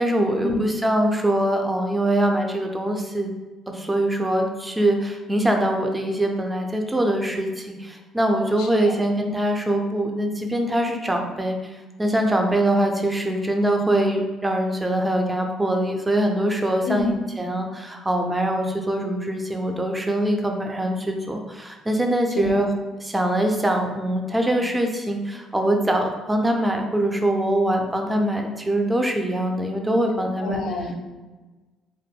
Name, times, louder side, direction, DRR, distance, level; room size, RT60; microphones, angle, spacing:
voice 1, 0.0-3.3 3.7-11.6 12.0-22.7 23.0-30.6, right 1 dB, 10° right, 3 dB, 0.3 m, -23 dB
voice 2, 8.6-8.9 16.8-17.1 22.4-22.6 30.4-31.0, left 3 dB, 75° left, 2 dB, 0.4 m, -27 dB
2.2 x 2.1 x 3.3 m, 1.2 s
cardioid pair, 130°, 0 cm